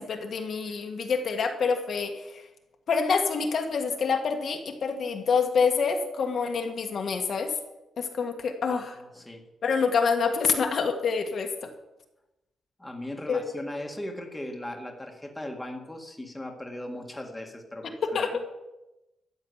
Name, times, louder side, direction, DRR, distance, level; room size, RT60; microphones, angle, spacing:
voice 1, 0.0-2.4 2.9-7.5 8.0-9.0 9.6-11.7 13.3-13.4 18.0-18.4, left 5 dB, 50° left, 4 dB, 1.7 m, -27 dB
voice 2, 8.7-9.4 12.8-18.4, left 1 dB, 10° left, 2 dB, 1.8 m, -38 dB
13.5 x 7.3 x 9.6 m, 0.97 s
wide cardioid pair, 160°, 0 cm